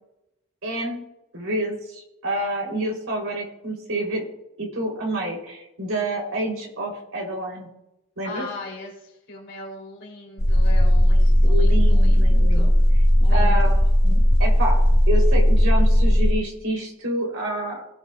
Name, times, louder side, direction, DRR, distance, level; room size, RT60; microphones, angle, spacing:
voice 1, 0.6-1.0 1.3-4.3 4.6-7.7 8.2-8.5 11.4-12.7 13.3-14.8 15.1-17.8, right 1 dB, 70° right, 0 dB, 3.5 m, -28 dB
voice 2, 8.2-12.7 13.2-13.7, left 2 dB, 55° left, -1 dB, 3.2 m, -39 dB
sound 1, 10.4-16.3, equal, 85° left, 2.0 m, -16 dB
17.0 x 9.9 x 2.4 m, 0.87 s
head